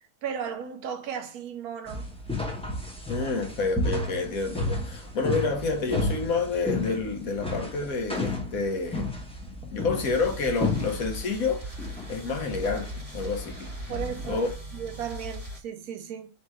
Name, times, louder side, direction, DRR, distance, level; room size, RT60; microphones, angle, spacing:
voice 1, 0.2-2.1 13.9-14.4 14.7-16.3, right 7 dB, 70° right, 1.1 m, -35 dB
sound 1, 1.9-14.5, left 2 dB, 10° left, 0.4 m, -33 dB
voice 2, 3.1-9.1 9.7-13.9 14.3-14.5, left 4 dB, 65° left, 1.2 m, -29 dB
sound 2, 10.0-15.6, equal, 25° right, 1.4 m, -40 dB
3.3 x 2.9 x 4.6 m
omnidirectional pair, 1.7 m